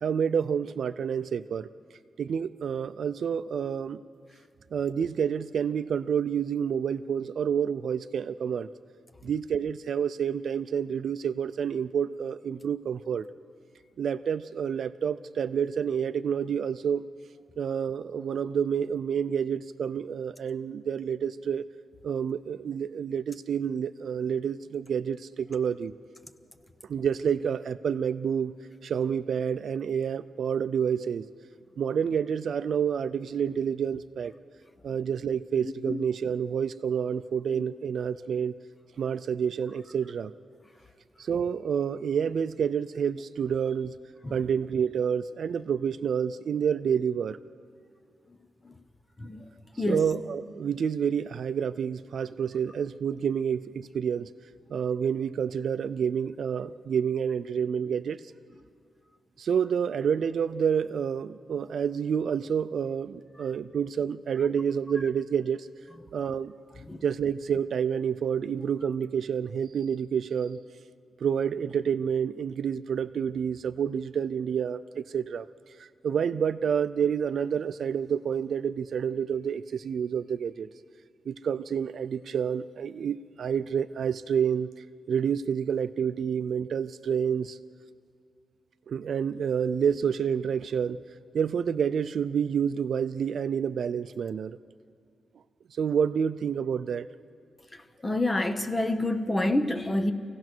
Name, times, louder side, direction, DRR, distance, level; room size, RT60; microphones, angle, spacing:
voice 1, 0.0-1.7 2.2-4.0 4.7-8.7 9.2-13.3 14.0-17.0 17.6-21.7 22.0-25.9 26.9-28.5 28.8-31.3 31.8-34.3 34.8-38.5 39.0-40.3 41.2-43.9 44.3-47.4 49.9-54.3 54.7-58.2 59.4-65.7 66.1-66.5 67.0-70.6 71.2-75.5 75.8-80.7 81.3-84.7 85.1-87.6 88.9-91.0 91.3-94.6 95.8-97.1, right 7 dB, 65° right, 0.5 m, -28 dB
voice 2, 35.6-36.0 37.5-37.6 44.2-44.3 48.6-48.7 49.2-49.4 49.8-50.1 66.9-67.0 98.0-100.1, left 1 dB, 15° left, 1.0 m, -28 dB
26.5 x 16.5 x 6.2 m
wide cardioid pair, 130°, 0 cm